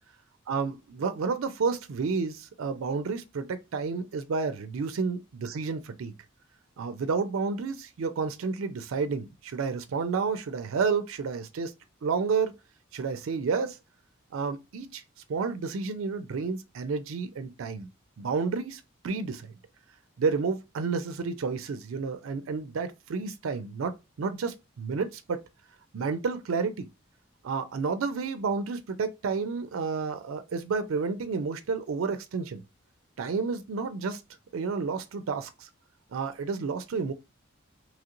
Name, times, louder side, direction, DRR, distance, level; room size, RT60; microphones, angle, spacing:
voice 1, 0.5-6.1 6.8-11.7 12.0-12.5 12.9-13.8 14.3-15.0 15.3-17.9 18.2-19.5 20.2-23.9 24.2-25.4 25.9-26.9 27.4-32.6 33.2-34.2 34.5-35.7 36.1-37.1, right 5 dB, 80° right, 0.4 m, -30 dB
2.9 x 2.9 x 2.4 m
head